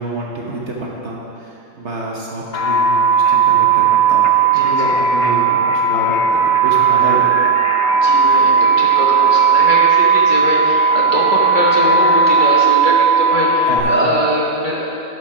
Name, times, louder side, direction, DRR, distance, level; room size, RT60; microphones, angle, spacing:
voice 1, 0.0-7.4 13.6-14.1, right 1 dB, 50° right, -3 dB, 1.1 m, -28 dB
sound 1, 2.5-13.8, right 5 dB, 60° left, 0.6 m, -14 dB
voice 2, 4.5-4.9 7.9-14.9, left 1 dB, 35° left, -5 dB, 1.1 m, -22 dB
11.0 x 5.2 x 5.9 m, 2.9 s
omnidirectional pair, 1.8 m